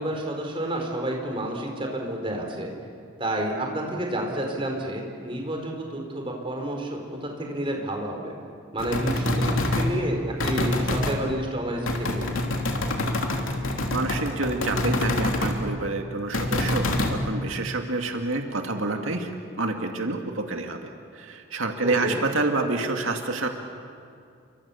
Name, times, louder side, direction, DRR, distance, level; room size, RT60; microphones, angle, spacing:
voice 1, 0.0-2.7 3.2-8.3 8.7-12.4 21.8-22.2, right 1 dB, 25° right, 1 dB, 4.5 m, -30 dB
sound 1, 8.8-9.9 10.4-11.2 11.9-15.6 16.3-17.2, left 1 dB, 80° left, 3.0 m, -26 dB
voice 2, 13.9-19.3 19.6-20.8 21.1-23.5, right 3 dB, 80° right, 4 dB, 2.2 m, -28 dB
29.5 x 24.5 x 7.2 m, 2.4 s
head